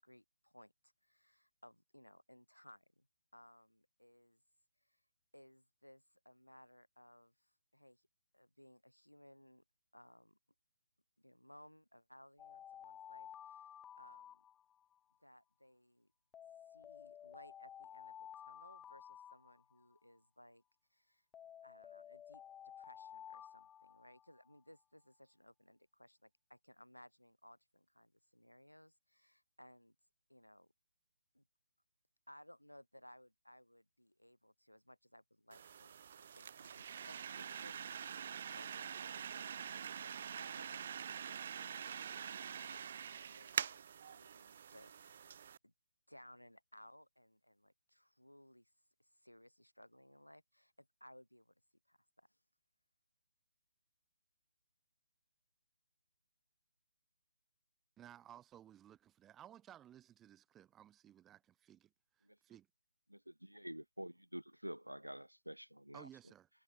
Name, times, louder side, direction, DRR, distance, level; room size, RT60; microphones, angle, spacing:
voice 1, 0.0-3.1 3.3-4.4 4.8-5.0 5.3-8.1 8.3-9.6 9.9-10.4 11.2-14.4 15.2-16.1 16.7-20.6 20.9-21.2 21.6-29.9 30.3-30.7 31.3-31.4 32.3-45.1 45.6-45.7 46.1-48.7 49.0-51.5 51.9-52.4, equal, 85° left, 3.0 m, -62 dB
Alarm, 12.4-15.0 16.3-20.0 21.3-24.6, left 9 dB, 10° left, 0.4 m, -54 dB
sound 1, 35.5-45.6, right 8 dB, 40° right, 1.0 m, -45 dB
voice 2, 58.0-62.7 65.9-66.5, right 11 dB, 10° right, 1.9 m, -58 dB
voice 3, 63.1-66.1, equal, 85° right, 0.9 m, -48 dB
figure-of-eight pair, 145°, 0 cm